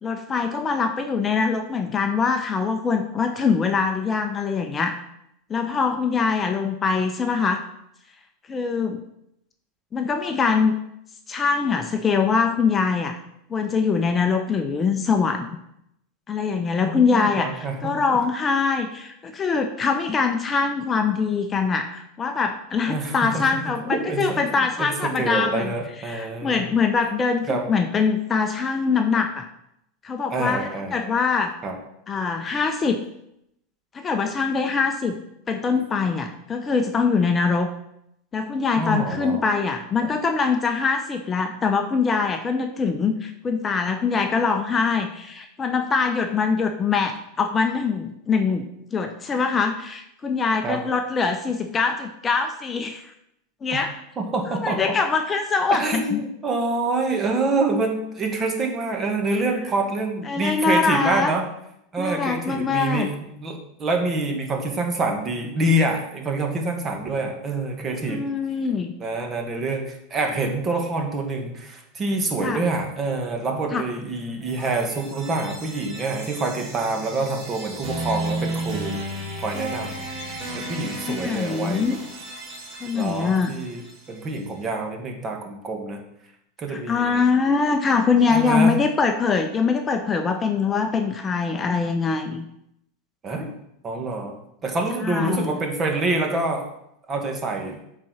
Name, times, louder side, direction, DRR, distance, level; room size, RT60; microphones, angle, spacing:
voice 1, 0.0-4.9 5.5-7.6 8.5-9.0 9.9-10.7 11.3-13.2 13.5-15.5 16.3-25.7 26.0-29.5 30.0-31.5 32.1-33.0 33.9-35.2 35.5-37.7 38.3-53.0 53.6-53.9 54.6-56.2 60.3-61.3 62.0-63.1 68.1-68.9 72.4-72.6 73.7-73.8 81.1-82.0 82.8-83.5 86.7-92.5 95.0-95.5, left 5 dB, 25° left, 6 dB, 0.6 m, -23 dB
voice 2, 16.8-18.2 22.9-26.6 27.5-27.7 30.3-31.2 31.6-31.7 38.8-39.4 50.6-50.8 53.7-53.9 54.2-54.9 55.7-61.4 61.9-68.2 69.0-79.0 79.4-80.0 80.5-82.0 82.9-83.8 84.1-86.0 86.6-87.2 88.3-88.7 93.2-93.5 93.8-94.3 94.6-96.7 97.1-97.8, right 2 dB, 25° right, 3 dB, 1.6 m, -26 dB
sound 1, 74.4-84.4, right 1 dB, 45° right, 2.8 m, -34 dB
7.5 x 4.2 x 4.8 m, 0.78 s
hypercardioid pair, 110°, 0 cm